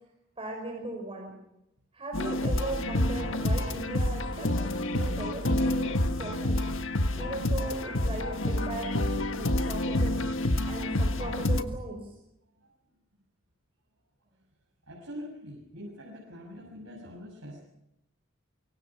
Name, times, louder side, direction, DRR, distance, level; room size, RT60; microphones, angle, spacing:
voice 1, 0.4-1.3 1.9-6.6 7.1-10.2 10.7-12.1, right 2 dB, 25° right, 0 dB, 5.4 m, -37 dB
sound 1, 2.1-11.6, left 1 dB, 65° left, 1.5 m, -28 dB
voice 2, 14.9-17.6, equal, 85° right, -3 dB, 6.8 m, -43 dB
26.0 x 23.0 x 6.0 m, 0.85 s
head